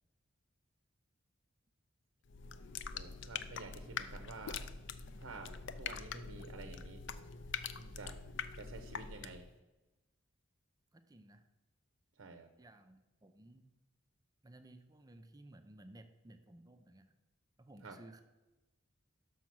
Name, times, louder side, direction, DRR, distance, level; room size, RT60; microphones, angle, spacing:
sound 1, 2.3-9.5, left 6 dB, 60° left, 0.4 m, -44 dB
voice 1, 2.9-4.7 5.2-7.0 7.9-8.2 8.5-9.5 12.2-12.5 17.8-18.0, right 3 dB, 65° right, 7 dB, 0.6 m, -50 dB
voice 2, 10.9-11.5 12.6-13.6 14.4-17.1 17.6-18.2, right 1 dB, 20° right, 9 dB, 0.4 m, -57 dB
6.2 x 5.9 x 5.9 m, 1.1 s
head